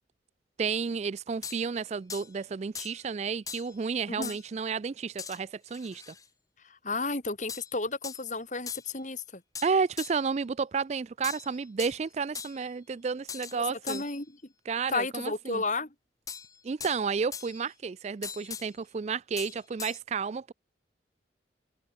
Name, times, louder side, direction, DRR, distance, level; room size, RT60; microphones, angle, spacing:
voice 1, 0.6-6.1 9.6-14.0 14.7-15.6 16.6-20.5, right 5 dB, 35° right, 0.3 m, -31 dB
sound 1, 1.4-1.7 2.1-2.3 2.8-3.0 3.5-3.7 4.2-4.4 5.2-5.4 5.7-6.3 7.5-7.7 8.0-8.2 8.7-8.9 9.6-10.2 11.2-12.0 12.3-12.7 13.3-13.6 13.9-14.2 16.3-17.0 17.3-17.7 18.2-18.7 19.4-20.0, left 6 dB, 20° left, 0.8 m, -40 dB
voice 2, 6.7-9.4 13.5-14.4 14.9-15.9, left 3 dB, 40° left, 3.0 m, -33 dB
head